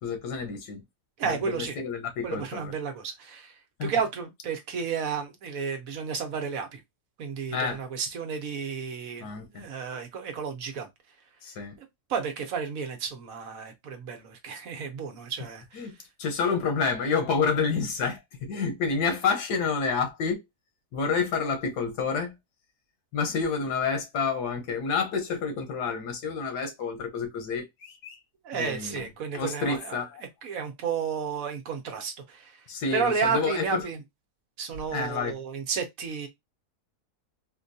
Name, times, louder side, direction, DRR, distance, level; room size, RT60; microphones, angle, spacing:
voice 1, 0.0-0.8 1.2-2.7 3.8-3.9 7.5-7.8 9.2-9.7 11.4-11.8 15.7-20.4 20.9-22.4 23.1-28.2 28.5-29.0 29.3-30.2 32.7-33.8 34.9-35.3, left 5 dB, 85° left, 1.6 m, -29 dB
voice 2, 1.2-1.8 2.2-6.8 7.2-10.9 12.1-15.9 28.4-30.0 30.4-34.0 34.6-36.3, right 6 dB, 65° right, 1.1 m, -32 dB
4.3 x 2.2 x 2.6 m
omnidirectional pair, 1.7 m